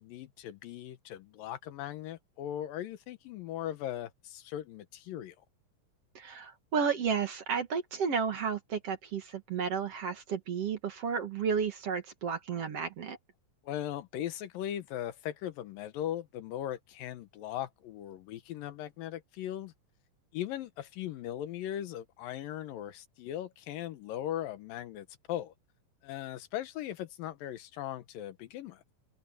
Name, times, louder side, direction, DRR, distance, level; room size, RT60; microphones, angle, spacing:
voice 1, 0.0-5.4 13.6-19.7 20.3-25.5 26.0-28.8, left 12 dB, 85° left, 2.8 m, -39 dB
voice 2, 6.2-13.2, right 6 dB, 50° right, 2.4 m, -32 dB
omnidirectional pair, 3.9 m